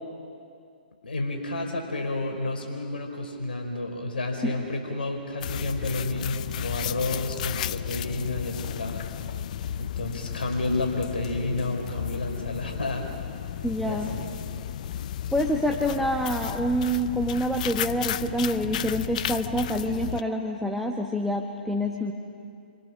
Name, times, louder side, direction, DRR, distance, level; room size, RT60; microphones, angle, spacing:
voice 1, 1.0-9.1 9.8-13.1 13.8-14.3, left 2 dB, 70° left, 3 dB, 3.9 m, -30 dB
sound 1, 5.4-20.2, left 10 dB, 50° left, 0.6 m, -33 dB
voice 2, 13.6-14.1 15.3-22.1, equal, ahead, 1 dB, 1.3 m, -27 dB
29.5 x 24.5 x 6.3 m, 2.4 s
figure-of-eight pair, 130°, 5 cm